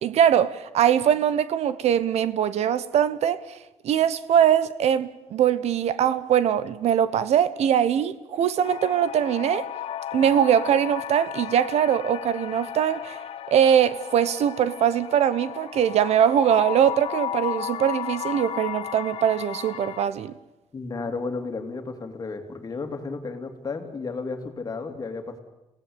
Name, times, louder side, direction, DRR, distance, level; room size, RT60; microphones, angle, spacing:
voice 1, 0.0-3.6 3.8-9.7 10.1-13.2 13.5-20.3, right 9 dB, 65° right, 1.1 m, -22 dB
sound 1, 8.6-20.1, left 10 dB, 55° left, 1.0 m, -34 dB
voice 2, 20.7-25.4, left 4 dB, 30° left, 3.0 m, -33 dB
27.5 x 17.0 x 8.8 m
cardioid pair, 125°, 12 cm